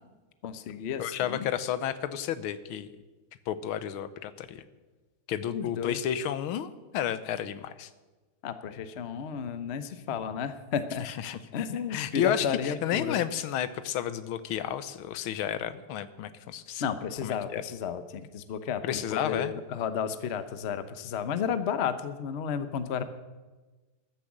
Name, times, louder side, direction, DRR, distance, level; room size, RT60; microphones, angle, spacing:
voice 1, 0.4-1.5 5.5-6.0 8.4-11.1 11.5-13.2 16.8-23.0, left 7 dB, 55° left, 11 dB, 0.7 m, -32 dB
voice 2, 1.0-2.9 3.5-4.6 5.3-7.9 11.0-11.4 11.9-16.8 17.2-17.6 18.8-19.5, left 10 dB, 85° left, 13 dB, 1.6 m, -31 dB
13.5 x 10.0 x 7.3 m, 1.2 s
omnidirectional pair, 2.2 m